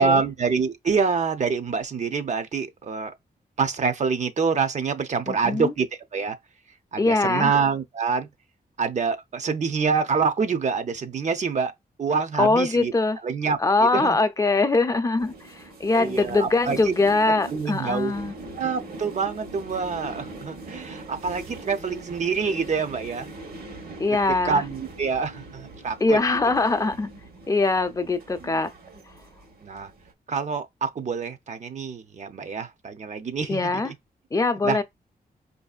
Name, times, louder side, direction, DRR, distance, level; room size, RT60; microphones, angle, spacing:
voice 1, 0.0-3.1 3.6-5.9 6.1-6.4 6.9-8.3 8.8-11.7 12.0-12.9 13.2-13.6 13.9-14.2 15.9-16.8 17.5-18.1 18.6-23.3 24.4-26.2 29.6-29.9 30.3-33.6 34.5-34.8, right 5 dB, 45° right, 0.6 m, -26 dB
voice 2, 5.3-5.7 7.0-7.6 12.4-13.2 13.6-18.3 24.0-24.6 26.0-27.1 27.5-28.7 33.5-33.9 34.3-34.8, left 3 dB, 20° left, 0.5 m, -22 dB
sound 1, 15.2-30.1, right 2 dB, 75° right, 1.1 m, -42 dB
4.8 x 2.7 x 2.3 m
wide cardioid pair, 105°, 16 cm